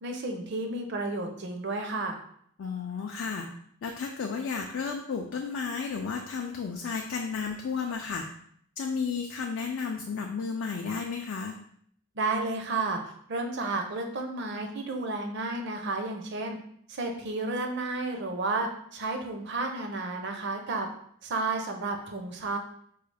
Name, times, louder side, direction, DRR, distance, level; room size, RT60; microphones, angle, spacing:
voice 1, 0.0-2.2 12.2-13.0 13.3-16.6 16.9-20.9 21.2-22.6, right 3 dB, 50° right, 4 dB, 0.5 m, -32 dB
voice 2, 2.6-3.5 3.8-8.2 8.8-11.5, left 5 dB, 55° left, 2 dB, 0.3 m, -33 dB
4.6 x 2.3 x 3.3 m, 0.65 s
head